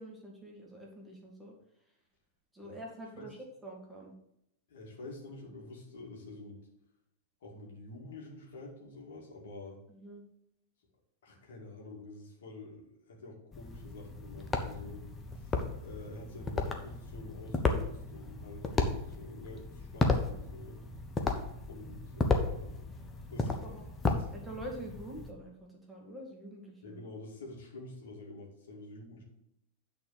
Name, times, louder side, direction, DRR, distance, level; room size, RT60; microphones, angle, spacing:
voice 1, 0.0-1.6 2.5-4.1 9.9-10.2 23.4-23.9 24.3-27.0, right 1 dB, 5° right, -2 dB, 2.2 m, -46 dB
voice 2, 4.7-6.6 7.4-9.8 11.2-15.1 15.3-20.8 21.6-22.8 23.3-23.8 26.8-29.2, left 2 dB, 60° left, -1 dB, 2.2 m, -48 dB
sound 1, 13.5-25.3, left 3 dB, 15° left, 1.1 m, -34 dB
9.4 x 4.2 x 6.6 m, 0.78 s
figure-of-eight pair, 90°, 0 cm